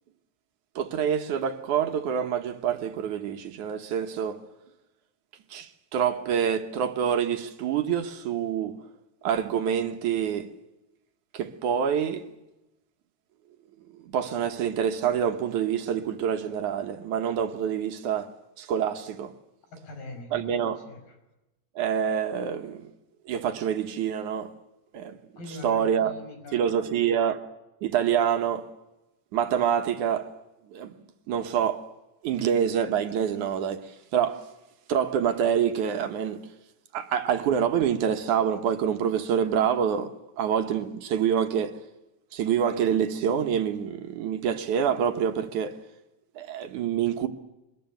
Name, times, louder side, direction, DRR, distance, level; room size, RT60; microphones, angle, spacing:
voice 1, 0.8-4.4 5.5-8.8 9.2-10.5 11.3-12.2 14.0-18.3 18.6-19.3 20.3-20.8 21.8-22.9 23.3-24.5 24.9-25.2 25.6-26.1 26.5-27.5 27.8-28.7 29.3-30.3 30.7-31.0 31.3-31.8 32.2-34.5 34.9-36.5 36.9-41.8 42.3-45.8 46.4-47.3, right 8 dB, 65° right, 2.5 m, -26 dB
voice 2, 19.7-20.5 20.9-21.2 25.4-27.0, left 2 dB, 80° left, 7.6 m, -42 dB
25.0 x 21.5 x 9.2 m
omnidirectional pair, 4.0 m